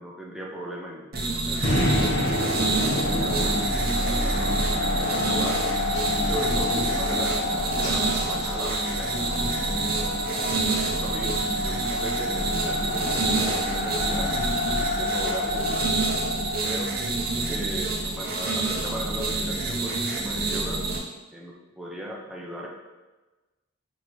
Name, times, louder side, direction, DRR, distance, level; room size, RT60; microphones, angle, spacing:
voice 1, 0.0-2.4 2.9-5.7 6.1-9.8 10.4-14.3 14.7-16.0 16.3-16.9 17.5-20.8 21.3-22.7, equal, ahead, -2 dB, 0.5 m, -38 dB
sound 1, 1.1-21.0, right 3 dB, 45° right, 0.7 m, -28 dB
sound 2, 1.6-17.8, left 1 dB, 60° left, 1.0 m, -28 dB
sound 3, 5.6-9.6, left 1 dB, 35° left, 1.3 m, -41 dB
5.8 x 2.7 x 3.1 m, 1.2 s
head